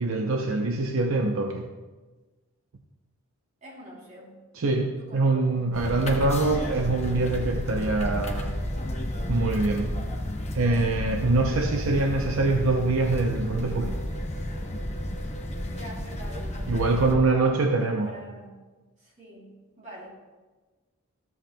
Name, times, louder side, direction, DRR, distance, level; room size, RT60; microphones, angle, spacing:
voice 1, 0.0-1.7 4.6-8.6 9.3-10.0 10.5-14.0 16.7-18.1, right 3 dB, 75° right, 3 dB, 0.6 m, -24 dB
voice 2, 3.6-4.4 5.0-5.7 15.7-18.6 19.0-20.1, right 1 dB, 35° right, -5 dB, 3.1 m, -45 dB
sound 1, 5.7-17.1, left 1 dB, 30° left, 0.9 m, -32 dB
13.5 x 7.8 x 2.2 m, 1.3 s
head